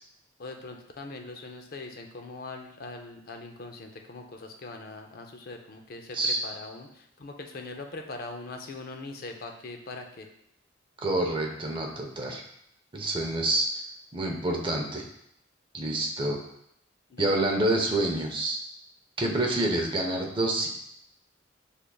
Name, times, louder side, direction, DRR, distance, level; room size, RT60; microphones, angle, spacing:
voice 1, 0.4-10.3 15.9-16.3 17.1-17.3, left 3 dB, 50° left, 4 dB, 0.5 m, -41 dB
voice 2, 11.0-12.4 12.9-13.8 14.1-15.0 15.7-16.4 17.2-18.6 19.2-20.7, right 1 dB, 25° right, 1 dB, 0.6 m, -27 dB
6.2 x 3.5 x 2.3 m, 0.75 s
head